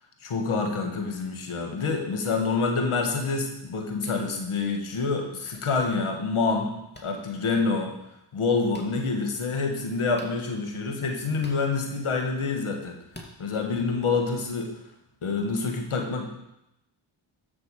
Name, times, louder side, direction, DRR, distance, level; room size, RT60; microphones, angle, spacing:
voice 1, 0.2-6.7 7.0-7.9 8.3-13.0 13.4-14.7 15.2-16.3, left 4 dB, 85° left, 3 dB, 1.5 m, -27 dB
sound 1, 4.0-4.2 5.5-5.6 6.9-7.1 8.7-8.9 10.1-10.4 11.4-11.6 13.1-13.3, left 1 dB, 20° left, 2.4 m, -46 dB
13.0 x 6.0 x 4.8 m, 0.86 s
cardioid pair, 40°, 49 cm